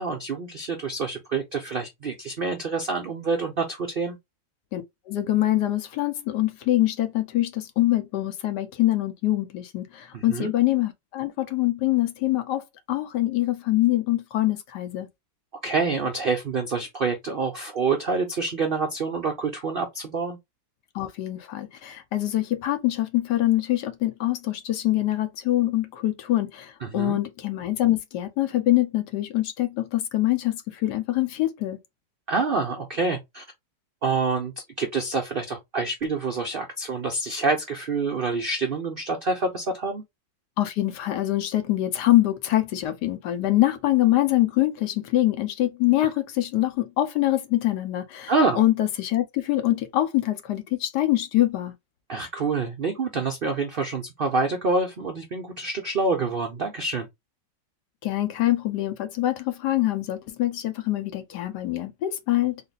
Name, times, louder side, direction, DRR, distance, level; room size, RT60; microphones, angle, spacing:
voice 1, 0.0-4.2 10.1-10.5 15.6-20.4 26.8-27.2 32.3-33.4 34.0-40.0 48.3-48.6 52.1-57.1, right 4 dB, 65° right, 0.5 m, -27 dB
voice 2, 4.7-15.1 20.9-31.8 40.6-51.7 58.0-62.6, left 15 dB, 70° left, 1.3 m, -24 dB
4.0 x 2.1 x 3.9 m
omnidirectional pair, 1.9 m